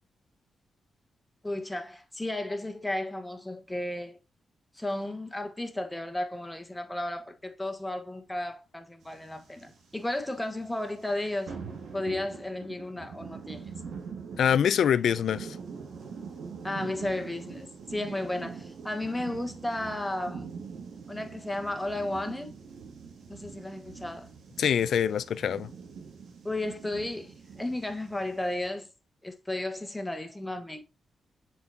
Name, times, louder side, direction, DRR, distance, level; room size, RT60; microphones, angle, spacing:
voice 1, 1.4-4.2 4.7-11.6 11.9-13.7 16.6-20.5 21.1-22.5 23.3-24.3 26.4-28.9 29.2-30.8, left 1 dB, 10° left, 1.2 m, -34 dB
sound 1, 9.0-28.7, right 5 dB, 80° right, 2.2 m, -44 dB
voice 2, 14.4-15.6 24.6-25.7, left 8 dB, 80° left, 0.4 m, -24 dB
7.2 x 4.6 x 2.8 m
cardioid pair, 65°, 0 cm